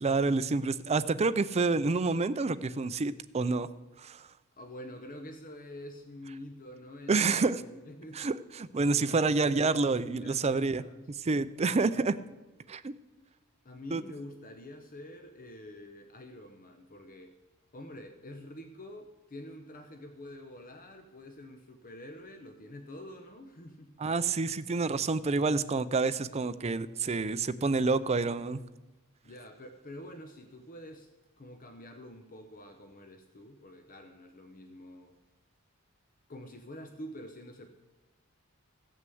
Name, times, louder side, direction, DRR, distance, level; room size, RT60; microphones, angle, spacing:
voice 1, 0.0-3.7 4.0-4.2 7.1-7.6 8.2-10.8 11.2-12.2 12.7-12.9 13.9-14.0 24.0-28.6, right 3 dB, 30° right, 13 dB, 0.5 m, -28 dB
voice 2, 4.6-8.3 8.8-11.0 13.6-17.3 17.7-23.9 29.2-31.1 31.4-35.2 36.3-37.7, left 1 dB, 40° left, 6 dB, 0.8 m, -47 dB
15.0 x 6.4 x 7.8 m, 1.1 s
head